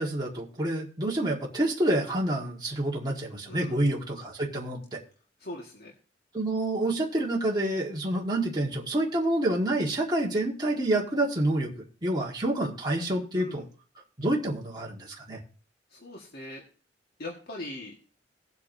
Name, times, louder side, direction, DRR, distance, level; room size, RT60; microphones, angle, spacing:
voice 1, 0.0-5.0 6.3-11.7 12.0-13.6 14.2-15.4, right 1 dB, 25° right, -3 dB, 1.6 m, -28 dB
voice 2, 3.5-3.8 5.4-5.9 13.3-13.6 15.9-16.6 17.2-17.9, left 1 dB, 60° left, -2 dB, 1.6 m, -40 dB
18.5 x 8.2 x 2.7 m, 0.38 s
head